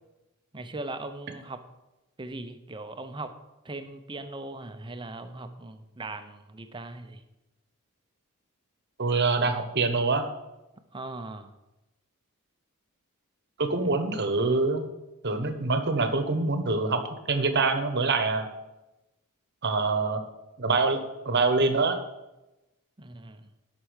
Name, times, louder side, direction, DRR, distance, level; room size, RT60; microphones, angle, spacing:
voice 1, 0.5-1.6 2.2-3.3 3.6-7.2 10.9-11.5 13.8-13.9 23.0-23.5, right 2 dB, 20° right, 8 dB, 0.7 m, -39 dB
voice 2, 9.0-10.3 13.6-14.8 15.2-18.4 19.6-20.2 20.6-22.0, right 3 dB, 50° right, 8 dB, 1.1 m, -25 dB
10.0 x 5.9 x 6.4 m, 0.99 s
head